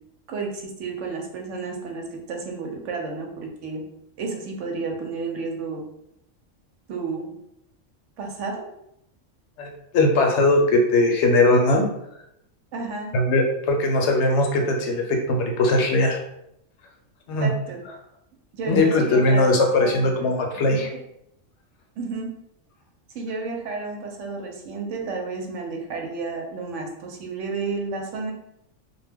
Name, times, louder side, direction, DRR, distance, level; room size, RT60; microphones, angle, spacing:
voice 1, 0.3-3.8 4.2-5.8 6.9-7.3 8.2-8.5 12.7-13.1 17.4-17.8 18.5-19.5 19.8-20.3 20.5-20.8 22.0-22.3 23.1-28.3, right 4 dB, 75° right, 1 dB, 0.9 m, -31 dB
voice 2, 9.6-11.9 13.1-16.2 17.3-17.5 18.7-20.9, left 2 dB, 70° left, 2 dB, 0.8 m, -20 dB
2.2 x 2.2 x 3.3 m, 0.79 s
omnidirectional pair, 1.3 m